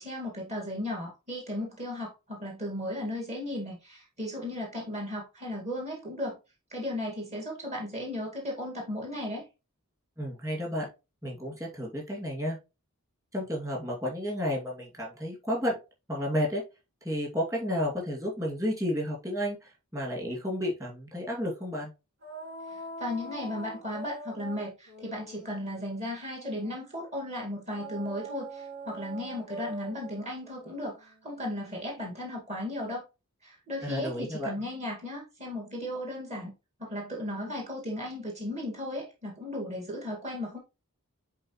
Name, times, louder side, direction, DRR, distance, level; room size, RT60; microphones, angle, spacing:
voice 1, 0.0-6.4 6.7-9.4 22.7-33.0 33.4-36.5 36.8-40.6, left 1 dB, 30° right, 2.1 m, -36 dB
voice 2, 10.2-10.9 11.2-12.6 13.3-15.8 16.1-16.6 17.0-21.9 33.8-34.5, equal, 15° right, 2.4 m, -32 dB
sound 1, 22.2-26.9 27.7-32.4, right 2 dB, 75° right, 3.1 m, -44 dB
10.0 x 3.9 x 3.1 m
head